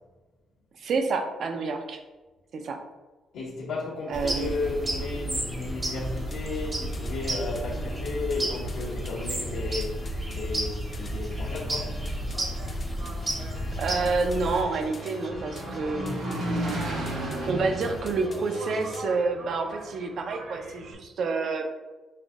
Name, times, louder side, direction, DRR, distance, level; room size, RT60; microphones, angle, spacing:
voice 1, 0.8-2.0 2.5-2.8 4.1-4.6 13.8-17.0 17.5-21.7, right 4 dB, 60° right, 0.5 m, -29 dB
voice 2, 3.3-11.9, left 3 dB, 85° left, 0.9 m, -34 dB
sound 1, 4.1-14.6, right 1 dB, 25° right, 0.8 m, -32 dB
sound 2, 4.2-19.0, left 1 dB, 40° left, 0.5 m, -43 dB
Engine, 12.2-20.9, right 1 dB, 85° right, 0.8 m, -36 dB
5.5 x 2.5 x 2.4 m
cardioid pair, 90°, 0 cm